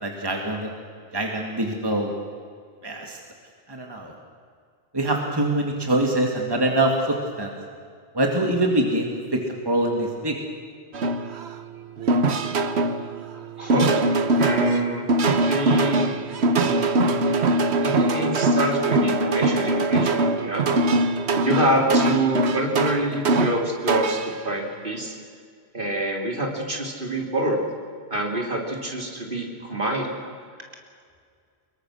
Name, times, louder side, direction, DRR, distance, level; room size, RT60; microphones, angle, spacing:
voice 1, 0.0-0.7 1.1-2.1 2.8-3.2 3.7-4.1 4.9-7.5 8.1-10.4, right 1 dB, 20° right, 1 dB, 2.2 m, -24 dB
sound 1, 10.9-11.6 12.0-24.4, right 2 dB, 70° right, 1.4 m, -22 dB
voice 2, 13.6-16.2 16.5-17.5 17.8-20.7 21.4-25.1 25.7-27.6 28.1-30.1, right 1 dB, 50° right, 1 dB, 3.4 m, -26 dB
25.0 x 22.0 x 6.4 m, 2.1 s
omnidirectional pair, 1.1 m